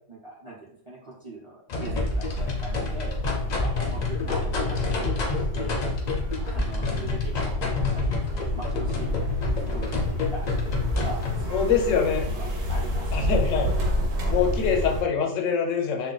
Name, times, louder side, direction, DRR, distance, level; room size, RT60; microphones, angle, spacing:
voice 1, 0.1-3.2 3.6-5.8 6.4-7.6 7.9-9.3 9.7-10.5 11.0-11.7 12.3-13.1 13.7-13.8, right 2 dB, 30° right, -5 dB, 0.6 m, -41 dB
sound 1, 1.7-11.4, left 4 dB, 50° left, 0.5 m, -29 dB
sound 2, 1.8-15.0, equal, 85° right, 1.0 m, -29 dB
voice 2, 7.1-7.4 11.5-12.3 13.1-13.7 14.3-16.1, left 6 dB, 85° left, 4 dB, 1.0 m, -25 dB
sound 3, 7.6-14.1, right 2 dB, 60° right, 1.0 m, -43 dB
2.4 x 2.2 x 3.8 m, 0.65 s
omnidirectional pair, 1.3 m